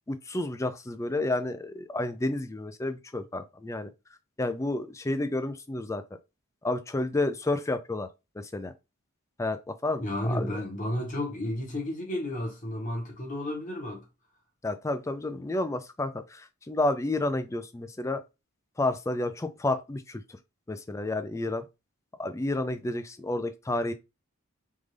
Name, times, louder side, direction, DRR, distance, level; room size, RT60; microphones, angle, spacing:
voice 1, 0.1-3.9 4.4-6.0 6.6-8.1 8.4-8.7 9.4-10.5 14.6-18.2 18.8-20.2 20.7-21.6 22.2-23.9, left 2 dB, 15° left, 0.3 m, -30 dB
voice 2, 10.0-14.0, left 1 dB, 40° left, 1.3 m, -32 dB
3.6 x 2.5 x 3.2 m
head